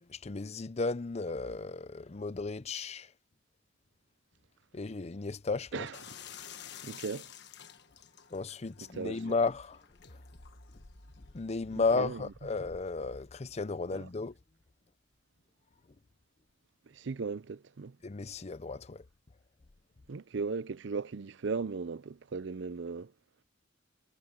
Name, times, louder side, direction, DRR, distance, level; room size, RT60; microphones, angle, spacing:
voice 1, 0.0-3.1 4.7-5.9 8.3-10.2 11.3-14.4 18.0-19.0, left 3 dB, 35° left, 0.6 m, -34 dB
sound 1, 5.9-11.4, left 9 dB, 60° left, 1.4 m, -51 dB
voice 2, 6.8-7.3 9.0-9.1 12.0-12.2 13.9-14.1 16.9-18.0 20.1-23.1, right 4 dB, 65° right, 0.5 m, -37 dB
sound 2, 10.0-14.9 15.4-15.5, equal, 90° left, 5.2 m, -58 dB
head